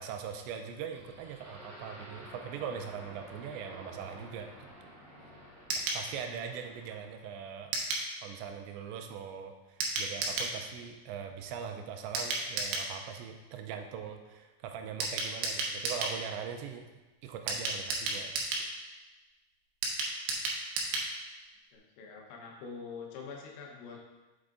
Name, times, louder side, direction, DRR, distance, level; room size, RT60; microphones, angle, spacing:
voice 1, 0.0-4.5 5.9-7.7 8.2-16.9 17.2-18.3, right 7 dB, 85° right, 5 dB, 2.9 m, -41 dB
sound 1, 0.9-7.2, equal, 40° right, 1.7 m, -51 dB
sound 2, 5.7-6.0 7.7-8.1 9.8-10.5 12.1-12.9 15.0-16.2 17.5-18.7 19.8-21.1 21.4-21.5 21.8-21.9, right 3 dB, 70° right, 2.8 m, -33 dB
voice 2, 21.7-24.0, left 5 dB, 90° left, -1 dB, 3.5 m, -45 dB
8.2 x 7.8 x 2.6 m, 1.1 s
omnidirectional pair, 5.2 m